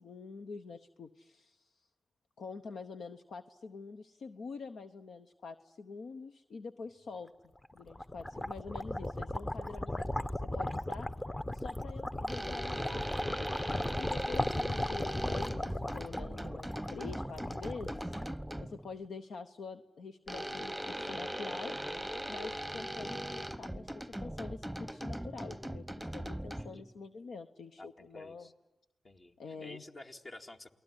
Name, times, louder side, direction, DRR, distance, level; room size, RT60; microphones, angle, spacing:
voice 1, 0.0-1.7 2.4-7.3 7.7-11.1 11.5-13.5 14.0-18.1 18.6-21.7 22.3-28.5 29.4-29.8, left 4 dB, 80° left, 8 dB, 0.9 m, -46 dB
sound 1, 7.6-18.8, left 1 dB, 25° left, 1.1 m, -37 dB
sound 2, 12.3-18.9 20.3-26.9, equal, 5° right, 1.0 m, -40 dB
voice 2, 27.8-28.5 29.0-30.7, left 2 dB, 45° left, 4 dB, 2.2 m, -51 dB
29.0 x 19.5 x 9.9 m, 0.96 s
supercardioid pair, 45°, 0 cm